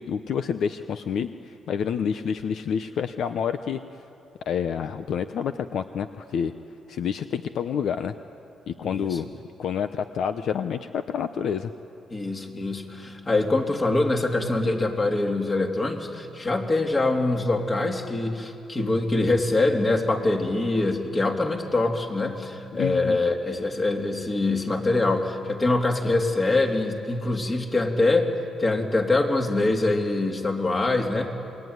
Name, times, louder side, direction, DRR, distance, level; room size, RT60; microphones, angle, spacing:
voice 1, 0.0-3.8 4.5-6.5 6.9-8.1 8.7-9.3 9.6-11.7 22.8-23.2, left 7 dB, 70° left, 9 dB, 0.9 m, -28 dB
voice 2, 8.8-9.2 12.1-28.3 28.6-31.3, left 2 dB, 30° left, 2 dB, 3.3 m, -24 dB
28.0 x 21.5 x 9.6 m, 2.8 s
cardioid pair, 90°, 0 cm